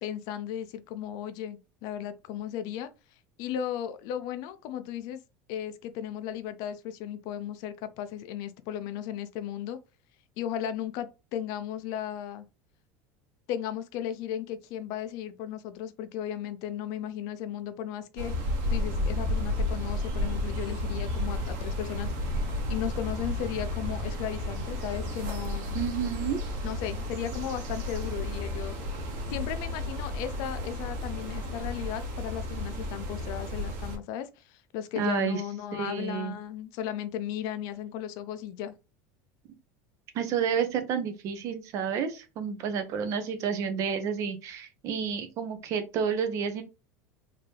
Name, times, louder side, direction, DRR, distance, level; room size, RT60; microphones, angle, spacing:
voice 1, 0.0-2.9 3.4-5.2 5.5-9.8 10.4-12.5 13.5-18.3 18.7-22.1 22.4-25.8 26.6-28.8 29.3-38.7, left 10 dB, 55° left, 0.5 m, -35 dB
sound 1, 18.2-34.0, left 1 dB, 65° right, 1.4 m, -32 dB
voice 2, 25.7-26.4 35.0-35.4 35.7-36.3 40.1-46.6, right 7 dB, 45° right, 0.7 m, -30 dB
3.7 x 2.8 x 3.3 m
cardioid pair, 150°, 8 cm